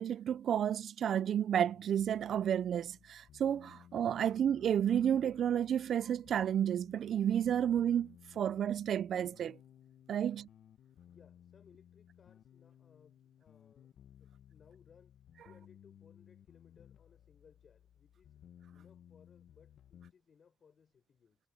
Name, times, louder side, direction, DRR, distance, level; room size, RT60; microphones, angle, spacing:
voice 1, 0.0-9.6 10.1-10.5, right 9 dB, 65° right, 0.4 m, -31 dB
sound 1, 1.5-20.1, left 10 dB, 65° left, 1.1 m, -60 dB
voice 2, 11.1-13.9 14.2-18.4 18.7-21.4, left 6 dB, 50° left, 6.7 m, -65 dB
cardioid pair, 90°, 0 cm